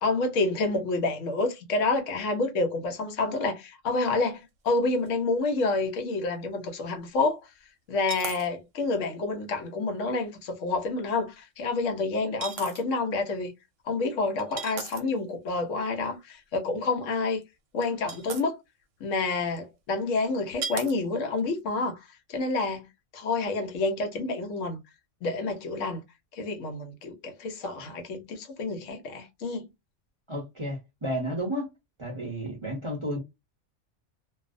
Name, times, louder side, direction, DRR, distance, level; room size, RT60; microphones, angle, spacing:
voice 1, 0.0-7.4 7.9-13.5 13.9-17.4 17.7-18.6 19.0-22.0 22.3-22.9 23.1-24.8 25.2-26.0 26.3-29.7, left 3 dB, 80° left, 1.0 m, -28 dB
sound 1, 4.7-4.8 5.0-5.1 8.0-8.5 8.9-9.0 10.8-10.9 12.4-12.8 14.4-15.2 17.4-17.5 17.8-18.4 19.5-19.6 20.6-20.9 21.4-21.6, right 6 dB, 85° right, 0.9 m, -36 dB
voice 2, 30.3-31.7 32.0-33.2, equal, 30° right, 0.6 m, -32 dB
2.4 x 2.0 x 2.5 m
omnidirectional pair, 1.3 m